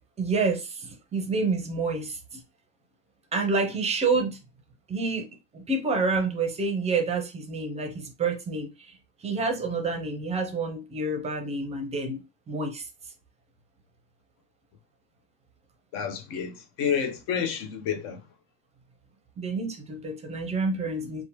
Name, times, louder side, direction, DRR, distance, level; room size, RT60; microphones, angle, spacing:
voice 1, 0.2-2.4 3.3-4.4 4.9-5.3 5.5-9.0 9.2-12.9 19.4-21.2, right 3 dB, 20° right, 0.5 m, -28 dB
voice 2, 15.9-18.2, left 7 dB, 55° left, 0.6 m, -29 dB
2.8 x 2.1 x 2.9 m
supercardioid pair, 140°, 31 cm